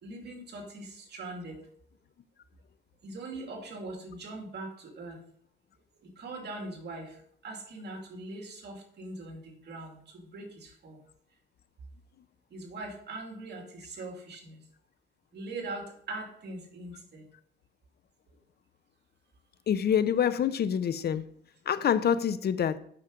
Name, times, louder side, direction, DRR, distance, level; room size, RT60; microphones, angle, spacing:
voice 1, 0.0-1.6 3.0-5.2 6.2-7.1 7.4-11.0 12.5-14.6 15.3-17.2, right 2 dB, 55° right, 2.7 m, -41 dB
voice 2, 19.7-21.2 21.7-22.8, left 8 dB, 55° left, 0.7 m, -26 dB
8.6 x 6.0 x 5.2 m
cardioid pair, 90°, 20 cm